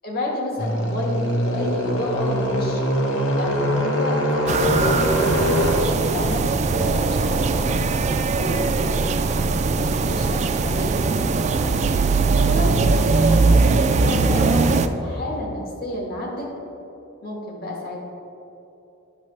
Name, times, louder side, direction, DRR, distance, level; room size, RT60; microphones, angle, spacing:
voice 1, 0.0-2.8 3.4-4.2 5.5-7.8 8.4-9.1 9.7-11.2 12.5-16.5 17.2-18.0, left 1 dB, 50° left, -2 dB, 1.3 m, -30 dB
sound 1, 0.6-14.9, equal, 65° left, 1.0 m, -26 dB
sound 2, 4.5-14.9, right 4 dB, 35° right, 0.3 m, -20 dB
10.0 x 6.0 x 3.2 m, 3.0 s
head